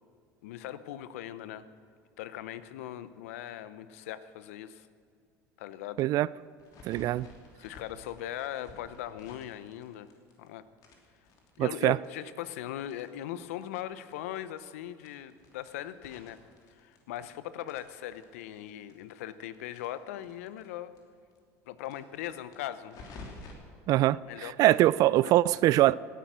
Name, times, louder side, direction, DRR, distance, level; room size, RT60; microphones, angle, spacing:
voice 1, 0.4-1.6 2.2-4.9 5.6-6.0 7.6-10.1 10.4-10.6 11.6-16.4 16.7-20.9 21.7-23.0 24.2-24.5 24.8-25.6, left 12 dB, 85° left, 0.7 m, -40 dB
sound 1, 6.6-10.5 10.8-13.8 14.1-14.2 14.5-14.6 15.0-17.3 17.6-20.7 21.0-21.1 21.3-21.4 21.8-23.5, left 3 dB, 55° left, 3.1 m, -52 dB
voice 2, 6.9-7.3 11.6-12.0 23.9-24.2 24.6-26.0, right 15 dB, 55° right, 0.4 m, -22 dB
17.0 x 10.5 x 6.2 m
supercardioid pair, 95°, 7 cm